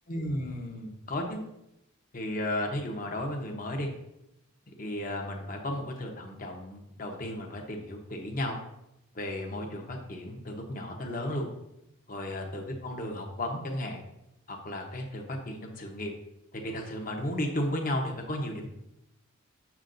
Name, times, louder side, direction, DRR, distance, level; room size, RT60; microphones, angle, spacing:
voice 1, 0.1-1.4 2.1-3.9 4.8-8.6 9.1-11.5 12.1-14.0 14.5-16.1 16.5-18.7, left 1 dB, 40° left, 2 dB, 1.0 m, -34 dB
7.2 x 6.8 x 2.6 m, 0.84 s
head